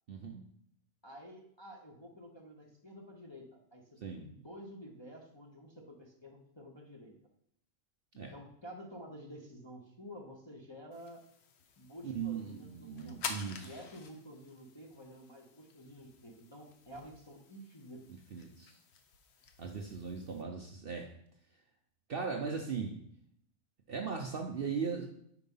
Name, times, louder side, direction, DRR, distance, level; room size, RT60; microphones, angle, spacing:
voice 1, 0.1-0.4 4.0-4.3 8.2-8.3 12.0-13.8 18.3-18.8 19.6-21.1 22.1-23.0 23.9-25.1, right 5 dB, 55° right, 2 dB, 0.7 m, -38 dB
voice 2, 1.0-7.1 8.1-11.2 11.8-13.2 13.6-18.0, equal, 25° left, -1 dB, 0.7 m, -51 dB
sound 1, 10.9-20.4, left 5 dB, 60° left, 0.8 m, -49 dB
4.9 x 4.6 x 5.4 m, 0.69 s
omnidirectional pair, 1.5 m